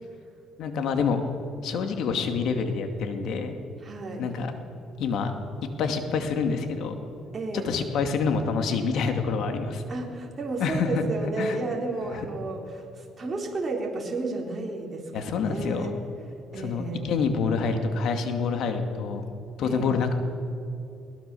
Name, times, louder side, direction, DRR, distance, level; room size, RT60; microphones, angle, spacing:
voice 1, 0.6-1.2 1.6-3.6 4.2-4.6 5.0-5.3 5.8-6.9 7.5-9.8 10.6-11.0 11.4-11.6 12.1-12.2 15.1-15.9 16.6-19.2 19.6-20.1, left 5 dB, 70° left, 6 dB, 2.4 m, -27 dB
voice 2, 3.8-4.3 7.3-7.7 9.9-15.9 16.5-17.0 19.6-19.9, right 3 dB, 30° right, -1 dB, 3.8 m, -32 dB
22.0 x 18.5 x 7.1 m, 2.8 s
cardioid pair, 105°, 0 cm